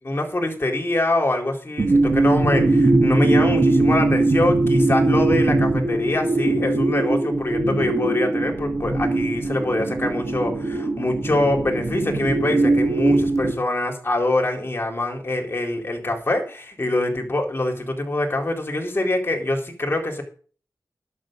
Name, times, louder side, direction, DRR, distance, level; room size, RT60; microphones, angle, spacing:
voice 1, 0.0-20.2, left 1 dB, 35° left, 2 dB, 4.0 m, -24 dB
sound 1, 1.8-13.5, right 2 dB, 45° right, 2.4 m, -20 dB
11.0 x 6.6 x 9.0 m, 0.41 s
wide cardioid pair, 105°, 7 cm